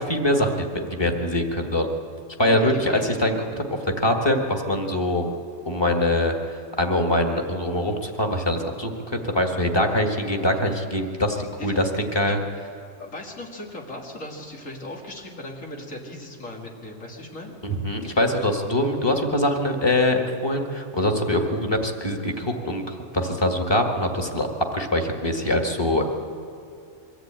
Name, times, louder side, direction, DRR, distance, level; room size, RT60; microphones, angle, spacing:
voice 1, 0.1-1.9 2.4-3.6 4.0-5.3 5.6-6.3 6.8-12.4 17.6-24.5 24.7-26.0, left 1 dB, 20° left, 3 dB, 1.8 m, -23 dB
voice 2, 2.5-3.1 11.6-11.8 12.2-12.4 13.0-17.5, left 1 dB, 85° left, 0 dB, 2.9 m, -38 dB
23.0 x 14.0 x 9.0 m, 2.5 s
omnidirectional pair, 1.3 m